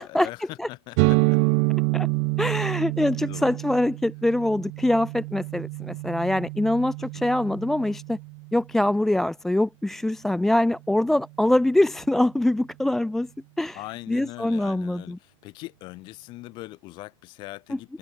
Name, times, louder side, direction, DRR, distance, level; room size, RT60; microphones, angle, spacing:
voice 1, 0.0-1.4 3.1-3.8 7.0-7.3 13.7-18.0, left 20 dB, 30° left, 5.4 m, -41 dB
sound 1, 1.0-8.6, right 40 dB or more, 35° right, 2.0 m, -27 dB
voice 2, 2.4-8.2 8.5-13.3 13.6-13.8 14.1-15.2 17.7-17.8, left 1 dB, ahead, 0.4 m, -24 dB
supercardioid pair, 170°, 16 cm